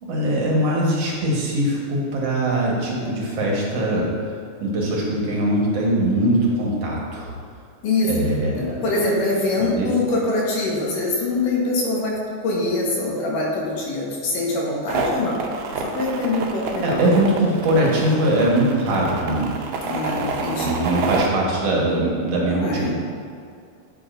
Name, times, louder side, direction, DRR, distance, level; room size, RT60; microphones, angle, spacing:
voice 1, 0.0-4.1 4.6-7.3 8.1-8.8 9.6-9.9 16.8-19.5 20.6-22.9, right 1 dB, 60° right, -3 dB, 2.0 m, -21 dB
voice 2, 8.6-15.4 15.8-17.0 19.8-20.8 22.6-22.9, left 2 dB, 85° left, -3 dB, 2.9 m, -24 dB
sound 1, 14.9-21.3, right 4 dB, 75° right, 1.9 m, -28 dB
8.7 x 8.4 x 2.6 m, 2.3 s
omnidirectional pair, 3.7 m